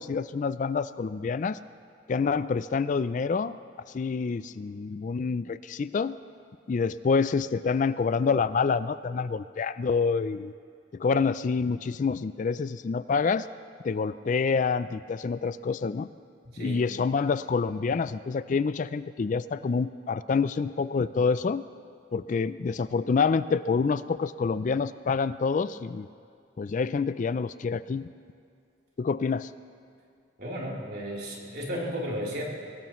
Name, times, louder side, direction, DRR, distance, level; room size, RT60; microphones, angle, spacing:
voice 1, 0.0-1.6 2.1-3.6 3.9-6.1 6.7-10.5 10.9-13.5 13.8-16.1 16.6-21.6 22.1-26.1 26.6-28.0 29.0-29.5, left 5 dB, 40° left, 15 dB, 0.3 m, -27 dB
voice 2, 16.4-16.9 30.4-32.4, equal, 55° right, -4 dB, 3.5 m, -34 dB
23.0 x 19.5 x 3.1 m, 2.5 s
head